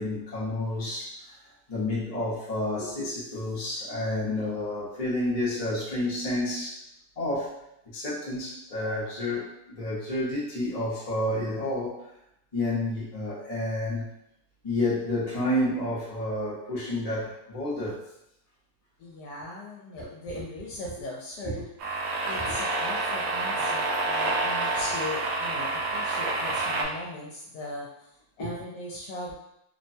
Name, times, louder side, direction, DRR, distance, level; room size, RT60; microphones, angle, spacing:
voice 1, 0.0-1.3 1.7-6.8 7.2-7.5 7.9-12.0 12.5-14.1 14.6-18.0 21.4-21.5 22.4-22.5 24.1-24.3 26.3-26.4 28.4-28.5, left 1 dB, 35° left, -8 dB, 0.6 m, -30 dB
voice 2, 19.0-21.6 22.2-29.3, left 2 dB, 80° left, -4 dB, 1.2 m, -39 dB
sound 1, 21.8-26.8, right 2 dB, 75° right, 1.2 m, -28 dB
3.2 x 2.1 x 2.6 m, 0.79 s
omnidirectional pair, 1.8 m